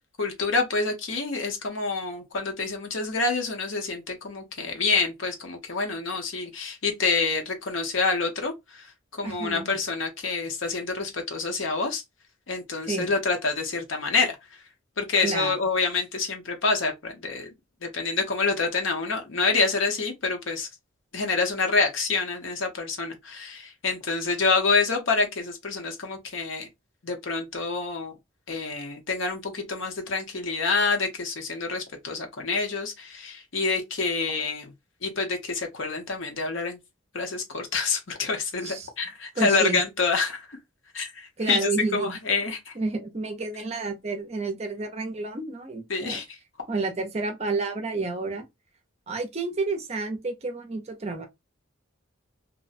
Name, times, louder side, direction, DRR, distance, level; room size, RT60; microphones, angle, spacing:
voice 1, 0.2-12.0 12.5-14.4 15.0-17.5 17.8-20.7 21.1-26.7 27.0-28.1 28.5-34.7 35.0-36.8 37.1-40.6 40.9-42.7 45.9-46.2, left 4 dB, 65° left, 0.8 m, -27 dB
voice 2, 9.2-9.7 12.8-13.1 15.2-15.6 38.6-38.9 39.4-39.8 41.4-42.2 42.8-46.2 46.7-48.5 49.1-51.3, right 3 dB, 30° right, 0.5 m, -30 dB
2.6 x 2.1 x 2.5 m
head